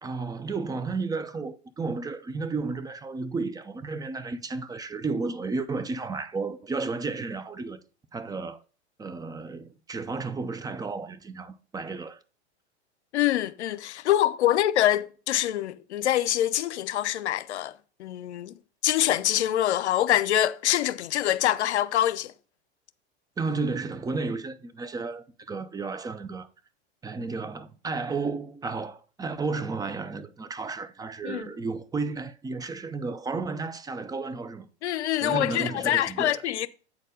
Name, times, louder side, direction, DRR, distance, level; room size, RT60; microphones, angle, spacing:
voice 1, 0.0-7.8 8.1-8.6 9.0-12.2 23.4-26.5 27.0-34.7 35.2-36.4, right 4 dB, 10° right, 0.5 m, -33 dB
voice 2, 13.1-22.3 31.2-31.4 34.8-36.7, left 12 dB, 75° left, 0.7 m, -25 dB
8.4 x 4.3 x 5.0 m
hypercardioid pair, 100°, 34 cm